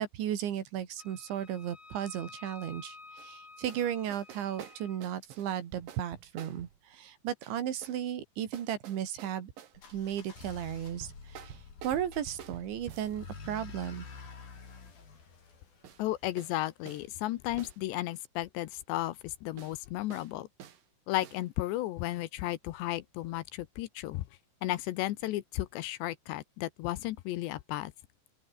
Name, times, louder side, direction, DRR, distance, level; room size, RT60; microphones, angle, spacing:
voice 1, 0.0-9.5 9.9-11.6 11.8-14.1, right 10 dB, 75° right, 4.7 m, -35 dB
Wind instrument woodwind instrument, 1.0-5.0, left 3 dB, 20° left, 3.9 m, -52 dB
sound 1, 3.2-3.3 3.7-3.9 4.1-6.8 7.4-8.0 8.5-10.0 10.9-13.2 15.8-16.0 16.4-16.6 16.9-17.1 17.6-17.8 19.6-19.8 20.1-20.3 20.6-20.8 21.2-21.4, right 10 dB, 55° right, 3.2 m, -49 dB
sound 2, 9.7-16.6, left 5 dB, 50° left, 7.0 m, -48 dB
voice 2, 16.0-20.5 21.1-24.2 24.6-27.9, left 15 dB, 75° left, 3.0 m, -34 dB
open air
omnidirectional pair, 5.4 m